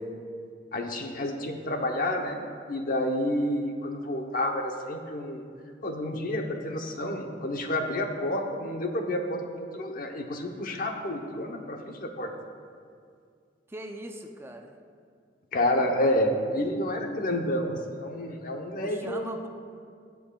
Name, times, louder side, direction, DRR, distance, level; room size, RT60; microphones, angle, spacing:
voice 1, 0.7-2.4 2.7-5.4 5.8-12.3 15.5-19.3, left 1 dB, 55° left, 3 dB, 0.9 m, -29 dB
voice 2, 13.7-14.7 18.8-19.5, right 1 dB, 15° right, 3 dB, 0.5 m, -40 dB
18.5 x 7.0 x 2.3 m, 2.2 s
head